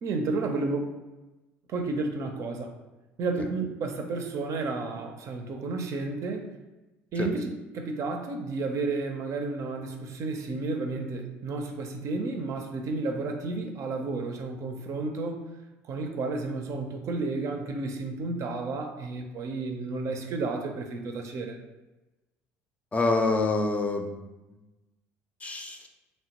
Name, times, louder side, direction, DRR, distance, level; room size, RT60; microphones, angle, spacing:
voice 1, 0.0-0.8 1.7-2.7 3.2-6.5 7.1-15.5 15.8-21.6, right 3 dB, 50° right, 4 dB, 0.5 m, -32 dB
voice 2, 22.9-24.2 24.5-24.6 25.4-25.9, left 3 dB, 20° left, 3 dB, 0.5 m, -26 dB
3.0 x 2.1 x 2.9 m, 1.1 s
hypercardioid pair, 70°, 6 cm